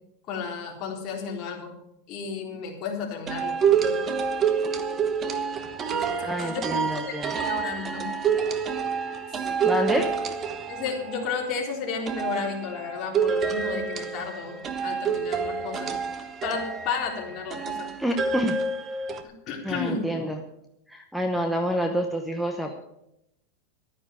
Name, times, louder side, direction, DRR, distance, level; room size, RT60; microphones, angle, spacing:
voice 1, 0.3-1.7 2.1-4.0 6.4-6.6 7.1-7.2 7.4-8.1 10.7-16.0 16.4-17.9 19.5-20.1, left 5 dB, 40° left, 0 dB, 3.7 m, -33 dB
sound 1, 3.3-11.5 12.1-19.2, right 6 dB, 25° right, 1.2 m, -28 dB
voice 2, 6.2-7.3 9.6-10.1 18.0-18.6 19.6-20.4 20.9-22.7, equal, ahead, 5 dB, 1.0 m, -27 dB
12.5 x 9.7 x 7.0 m, 0.83 s
supercardioid pair, 150°, 0 cm